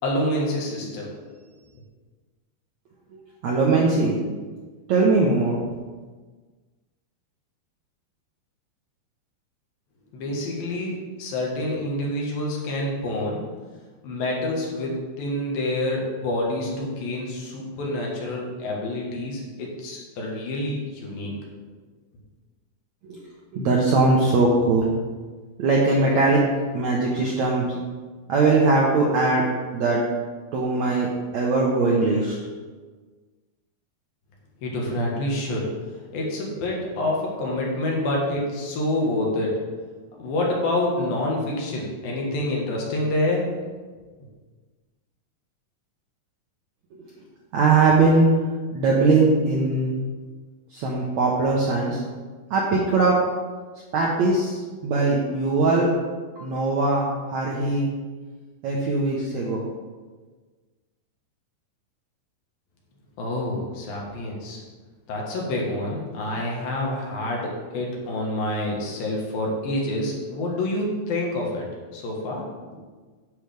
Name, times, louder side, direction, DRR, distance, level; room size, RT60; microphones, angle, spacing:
voice 1, 0.0-1.3 10.1-13.4 14.0-21.3 34.6-35.7 36.1-39.6 40.1-43.5 63.2-64.6 65.1-71.7 71.9-72.4, left 1 dB, 70° left, -2 dB, 3.1 m, -27 dB
voice 2, 3.4-4.2 4.9-5.6 23.0-23.2 23.5-24.9 25.6-26.4 26.7-27.8 28.3-29.4 29.7-30.0 30.5-31.1 31.3-32.4 47.5-48.3 48.7-49.9 50.7-52.0 52.5-53.2 53.9-54.6 54.8-55.9 56.4-57.9 58.6-59.6, right 3 dB, 75° right, -3 dB, 1.7 m, -20 dB
9.8 x 7.1 x 3.4 m, 1.4 s
omnidirectional pair, 4.5 m